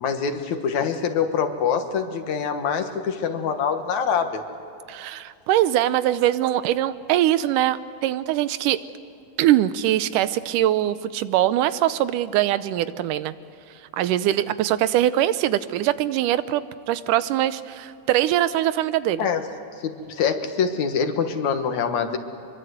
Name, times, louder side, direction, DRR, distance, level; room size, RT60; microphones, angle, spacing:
voice 1, 0.0-4.4 19.2-19.4 19.8-22.2, left 6 dB, 65° left, 7 dB, 2.6 m, -24 dB
voice 2, 4.9-8.8 9.4-13.3 13.9-19.3, right 13 dB, 90° right, 14 dB, 2.3 m, -22 dB
25.0 x 23.0 x 8.0 m, 2.6 s
omnidirectional pair, 3.6 m